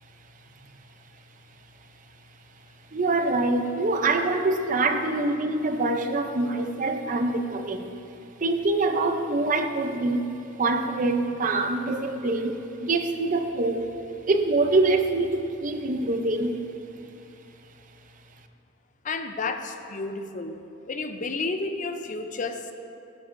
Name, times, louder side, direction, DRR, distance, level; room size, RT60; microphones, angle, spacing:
voice 1, 2.9-7.9 8.4-13.9 14.3-16.6, right 2 dB, 40° right, 7 dB, 0.5 m, -25 dB
voice 2, 19.0-20.6 20.9-22.7, left 3 dB, 40° left, 7 dB, 0.5 m, -31 dB
12.0 x 11.0 x 2.6 m, 2.7 s
head